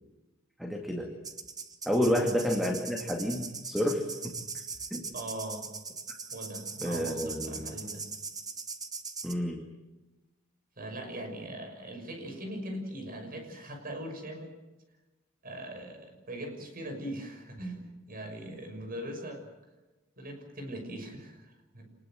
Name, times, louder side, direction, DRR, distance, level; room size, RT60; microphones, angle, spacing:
voice 1, 0.6-1.1 1.9-4.3 4.9-5.0 6.8-7.7 9.2-9.6, equal, ahead, 3 dB, 2.3 m, -30 dB
sound 1, 1.2-9.3, right 5 dB, 20° right, 1.3 m, -40 dB
voice 2, 5.1-5.7 6.3-8.0 10.8-14.5 15.4-19.4 20.2-21.9, right 1 dB, 45° right, 5 dB, 6.2 m, -40 dB
27.0 x 20.5 x 7.7 m, 1.1 s
head